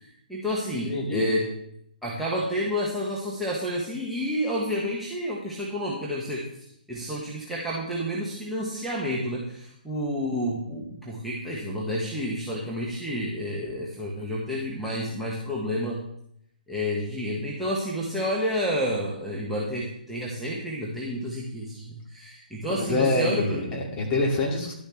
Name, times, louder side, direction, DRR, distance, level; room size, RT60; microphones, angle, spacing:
voice 1, 0.0-1.4 2.0-6.4 6.9-16.0 16.7-23.6, equal, ahead, -6 dB, 1.4 m, -30 dB
voice 2, 0.8-1.2 22.7-24.7, left 2 dB, 20° left, -2 dB, 2.3 m, -26 dB
11.5 x 10.5 x 3.3 m, 0.73 s
figure-of-eight pair, 130°, 5 cm